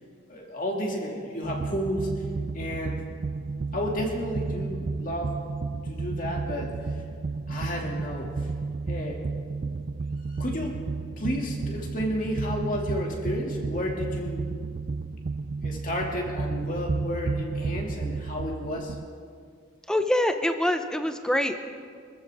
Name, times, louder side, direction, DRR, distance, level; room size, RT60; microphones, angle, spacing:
voice 1, 0.3-2.2 2.5-3.0 3.7-5.4 5.8-7.0 7.5-8.5 8.9-9.2 10.3-10.8 11.2-14.5 15.6-19.0, equal, 40° left, 0 dB, 2.3 m, -32 dB
sound 1, 1.4-19.1, right 4 dB, 40° right, 0.4 m, -32 dB
voice 2, 19.9-21.7, left 1 dB, 5° left, 7 dB, 0.7 m, -25 dB
26.0 x 14.0 x 3.5 m, 2.1 s
head